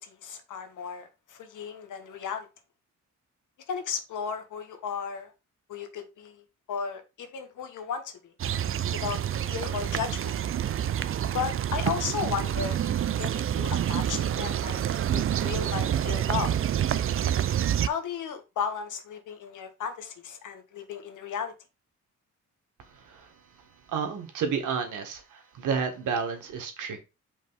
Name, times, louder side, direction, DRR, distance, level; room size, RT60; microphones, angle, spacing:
voice 1, 0.0-2.5 3.7-5.3 5.7-8.3 8.9-9.2 9.5-10.3 11.3-14.8 15.1-16.6 17.8-21.5, left 7 dB, 85° left, 1.4 m, -35 dB
sound 1, 8.4-17.9, right 10 dB, 45° right, 0.4 m, -28 dB
voice 2, 22.8-27.0, right 6 dB, 90° right, 1.5 m, -32 dB
5.2 x 3.3 x 5.5 m
cardioid pair, 90°, 30 cm